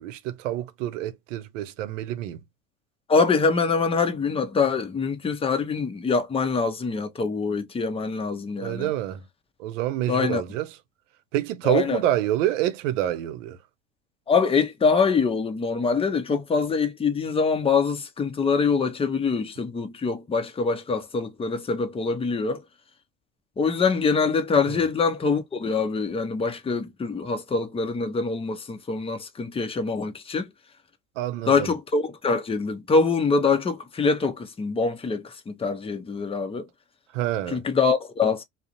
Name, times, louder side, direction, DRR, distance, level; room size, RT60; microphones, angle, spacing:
voice 1, 0.0-2.4 8.6-9.2 9.6-10.8 11.3-13.6 24.7-24.8 31.2-31.7 37.1-37.6, right 13 dB, 75° right, 0.6 m, -27 dB
voice 2, 3.1-8.9 10.1-10.4 11.6-12.0 14.3-22.6 23.6-30.5 31.5-36.7 37.5-38.4, left 4 dB, 15° left, 0.6 m, -24 dB
2.4 x 2.0 x 2.7 m
hypercardioid pair, 75°, 38 cm